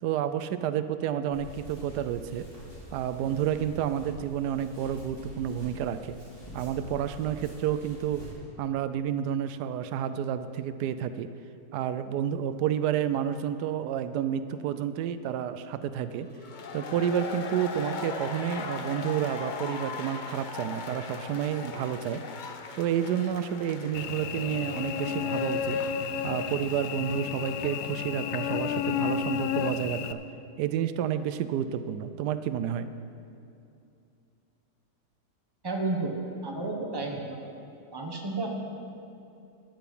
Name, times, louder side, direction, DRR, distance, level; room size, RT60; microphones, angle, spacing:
voice 1, 0.0-2.5 2.9-6.2 6.5-8.2 8.6-11.3 11.7-16.3 16.7-22.2 22.7-25.8 26.2-30.2 30.6-32.9, right 9 dB, 90° right, 11 dB, 1.2 m, -30 dB
sound 1, 1.3-8.3, equal, 15° left, 3.1 m, -46 dB
sound 2, 16.3-28.0, left 5 dB, 55° left, 0.5 m, -40 dB
Cricket / Buzz, 23.9-30.1, left 7 dB, 80° left, 1.1 m, -31 dB
voice 2, 35.6-36.1 36.4-37.5 37.9-38.5, right 3 dB, 15° right, 0 dB, 1.2 m, -32 dB
13.0 x 9.2 x 5.4 m, 2.6 s
omnidirectional pair, 1.7 m